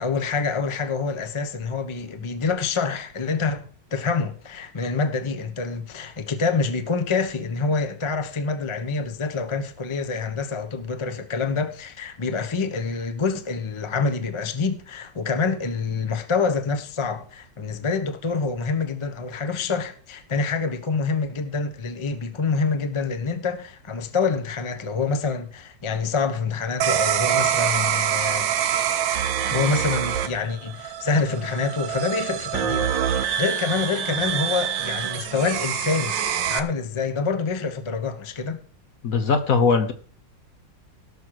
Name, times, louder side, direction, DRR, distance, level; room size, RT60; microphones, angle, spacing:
voice 1, 0.0-3.6 3.9-28.5 29.4-36.2 36.5-38.6, left 4 dB, 25° left, 0.7 m, -26 dB
sound 1, 26.8-36.6, right 9 dB, 85° right, 1.6 m, -25 dB
voice 2, 39.0-39.9, left 5 dB, 55° left, 1.3 m, -20 dB
17.0 x 6.3 x 4.7 m
omnidirectional pair, 2.0 m